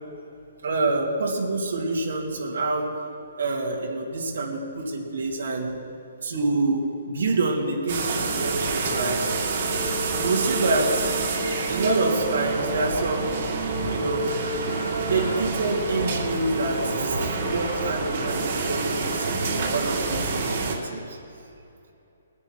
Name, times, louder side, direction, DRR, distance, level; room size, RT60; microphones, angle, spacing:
voice 1, 0.6-2.9 3.4-5.8 6.2-9.6 10.2-11.1 11.7-13.5 13.9-14.3 15.0-21.2, right 2 dB, 70° right, -2 dB, 2.8 m, -27 dB
sound 1, 7.9-20.8, right 3 dB, 40° right, 2.7 m, -27 dB
21.0 x 9.9 x 4.7 m, 2.7 s
hypercardioid pair, 175°, 0 cm